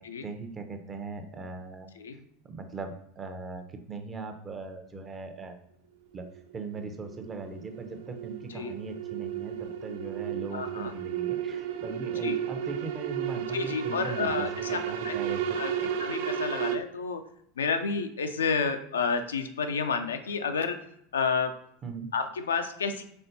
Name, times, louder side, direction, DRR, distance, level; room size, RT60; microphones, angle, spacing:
voice 1, 0.2-1.9 2.4-5.6 6.1-6.2 6.5-15.9 21.8-22.1, right 4 dB, 25° right, 6 dB, 0.7 m, -39 dB
sound 1, 6.2-16.7, right 9 dB, 60° right, 0.3 m, -33 dB
voice 2, 10.5-10.9 12.2-12.4 13.5-15.1 15.6-15.7 16.0-17.2 17.6-20.8 21.1-21.5 22.1-23.0, left 5 dB, 75° left, 7 dB, 0.4 m, -30 dB
5.3 x 3.7 x 2.7 m, 0.71 s
figure-of-eight pair, 80°, 0 cm